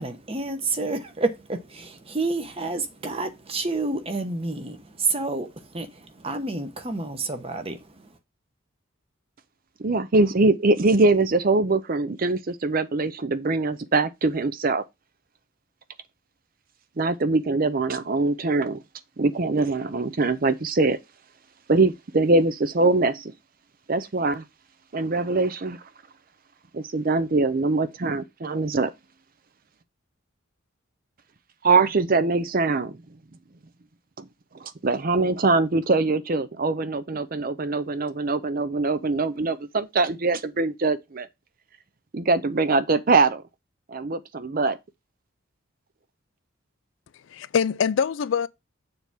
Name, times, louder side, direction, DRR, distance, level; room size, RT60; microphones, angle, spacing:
voice 1, 0.0-5.5 5.7-5.9 6.2-7.8, right 3 dB, 30° right, 1.0 m, -29 dB
voice 2, 9.8-14.8 17.0-18.8 19.2-21.0 21.7-23.3 23.9-24.4 24.9-25.8 26.7-28.9 31.6-33.0 34.2-34.3 34.6-41.3 42.1-43.4 43.9-44.8, right 3 dB, 45° right, 0.6 m, -23 dB
voice 3, 47.1-48.5, left 7 dB, 65° left, 0.4 m, -24 dB
6.9 x 3.4 x 6.0 m
head